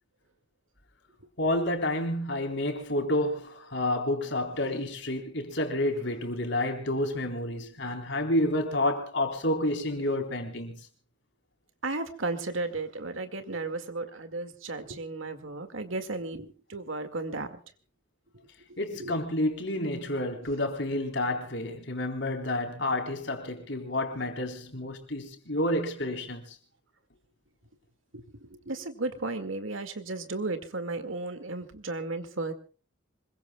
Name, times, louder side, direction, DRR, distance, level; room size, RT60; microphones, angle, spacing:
voice 1, 1.4-10.8 18.8-26.6, left 1 dB, 60° left, 4.0 m, -29 dB
voice 2, 11.8-17.6 19.0-19.2 28.1-32.5, right 3 dB, 80° right, 2.1 m, -34 dB
26.0 x 22.5 x 2.3 m
head